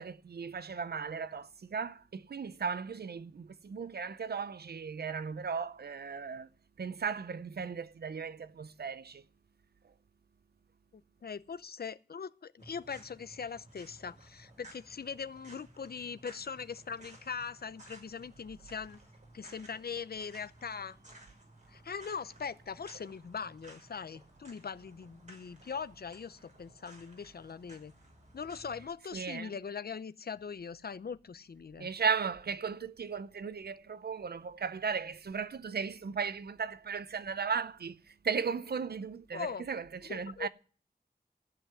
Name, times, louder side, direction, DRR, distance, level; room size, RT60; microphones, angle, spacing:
voice 1, 0.0-6.5 6.8-9.2 29.1-29.5 31.8-38.0 38.2-40.5, right 6 dB, 70° right, 0.6 m, -36 dB
voice 2, 10.9-19.0 19.3-21.0 21.7-27.9 28.3-31.9 39.3-39.7 40.0-40.5, left 6 dB, 65° left, 0.6 m, -41 dB
sound 1, 12.6-28.8, right 1 dB, 45° right, 5.6 m, -57 dB
15.0 x 5.8 x 9.5 m
wide cardioid pair, 70°, 17 cm